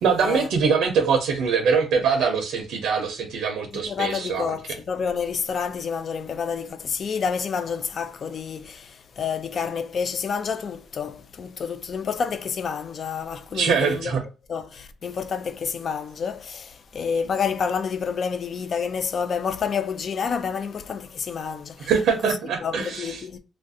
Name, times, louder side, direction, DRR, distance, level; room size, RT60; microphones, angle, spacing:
voice 1, 0.0-4.6 13.5-14.2 21.8-23.2, right 6 dB, 85° right, 0.6 m, -23 dB
voice 2, 3.7-14.1 14.5-21.9 22.2-22.3 22.6-23.4, left 6 dB, 50° left, 0.4 m, -29 dB
3.2 x 2.4 x 2.6 m
cardioid pair, 100°, 0 cm